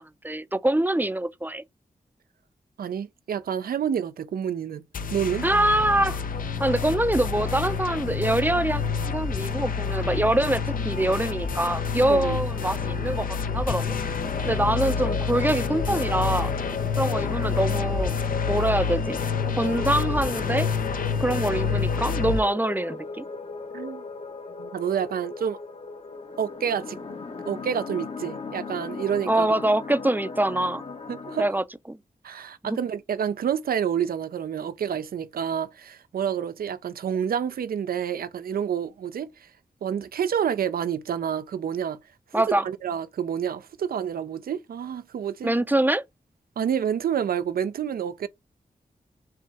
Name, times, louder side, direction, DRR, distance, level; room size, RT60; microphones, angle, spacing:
voice 1, 0.0-1.6 5.4-6.2 6.6-13.9 14.4-16.5 17.0-18.2 18.4-19.2 19.6-20.7 21.2-23.3 29.3-30.8 31.4-32.0 32.6-32.8 42.3-42.6 45.4-46.0, right 1 dB, 10° right, 0.5 m, -24 dB
voice 2, 2.8-4.8 5.1-5.4 12.1-12.4 14.4-14.5 23.7-24.0 24.6-25.6 26.4-27.0 27.5-29.5 31.1-31.5 32.2-39.5 39.8-42.0 42.6-45.6 46.6-48.3, right 8 dB, 85° right, 0.5 m, -28 dB
sound 1, 4.9-22.4, left 6 dB, 70° left, 0.6 m, -28 dB
sound 2, 14.2-31.5, left 4 dB, 40° left, 0.8 m, -37 dB
4.6 x 3.0 x 3.4 m
cardioid pair, 50°, 15 cm